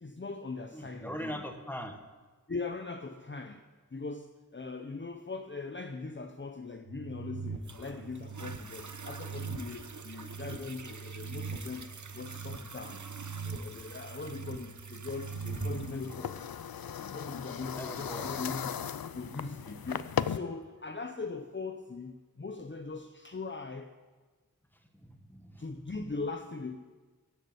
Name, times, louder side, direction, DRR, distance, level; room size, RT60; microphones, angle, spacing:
voice 1, 0.0-1.4 2.5-3.7 3.9-13.1 13.4-16.5 17.0-18.8 19.1-23.9 25.6-26.8, left 3 dB, 30° left, 6 dB, 0.7 m, -40 dB
voice 2, 0.7-2.0 17.7-18.3 24.7-25.6, equal, 5° left, 5 dB, 1.5 m, -41 dB
sound 1, 6.9-16.0, right 5 dB, 90° right, 1.5 m, -42 dB
Toilet flush, 7.6-20.7 21.3-21.4, right 4 dB, 55° right, 0.9 m, -49 dB
sound 2, 15.1-20.4, left 8 dB, 80° left, 0.5 m, -37 dB
16.0 x 6.7 x 7.9 m, 1.4 s
wide cardioid pair, 45°, 35 cm